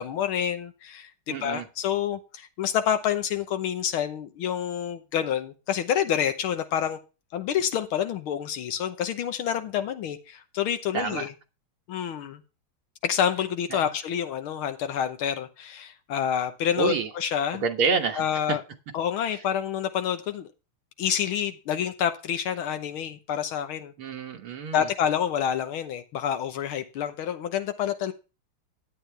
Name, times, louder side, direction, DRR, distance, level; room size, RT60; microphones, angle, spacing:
voice 1, 0.0-7.0 7.3-11.3 11.9-12.4 13.0-17.6 18.2-18.6 18.9-20.5 21.0-23.9 24.7-28.1, left 9 dB, 80° left, 9 dB, 1.8 m, -28 dB
voice 2, 1.3-1.7 10.9-11.3 13.7-13.8 16.8-17.1 17.6-18.2 18.5-18.6 24.0-24.9, right 5 dB, 85° right, 2 dB, 2.1 m, -27 dB
12.0 x 9.0 x 3.4 m, 0.30 s
omnidirectional pair, 2.3 m